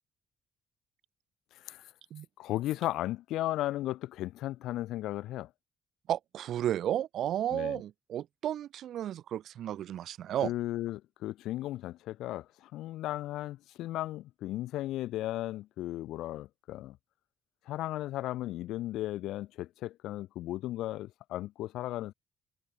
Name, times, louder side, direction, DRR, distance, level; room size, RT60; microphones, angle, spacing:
voice 1, 1.5-1.9 2.4-5.5 7.5-7.8 10.4-17.0 17.6-22.1, left 15 dB, 80° left, 1.4 m, -35 dB
voice 2, 6.1-10.5, right 11 dB, 70° right, 1.3 m, -33 dB
supercardioid pair, 65°, 0 cm